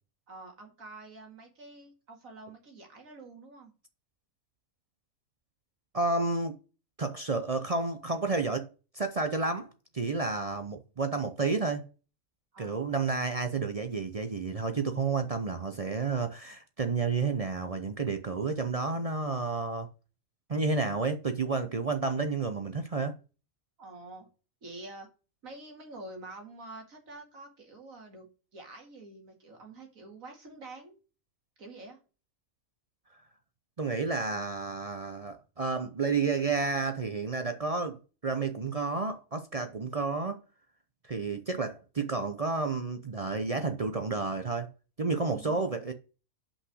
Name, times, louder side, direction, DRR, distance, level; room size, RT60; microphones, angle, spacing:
voice 1, 0.3-3.7 12.5-12.9 23.8-24.3 24.6-25.1 25.4-28.3 28.5-31.0 31.6-32.0 45.3-45.8, right 2 dB, 70° right, 2.5 m, -47 dB
voice 2, 5.9-6.6 7.0-8.7 8.9-9.7 9.9-11.9 12.6-19.9 20.5-23.2 33.8-40.4 41.1-44.7 45.0-45.9, right 4 dB, 45° right, 0.5 m, -31 dB
5.7 x 5.7 x 6.1 m
omnidirectional pair, 1.5 m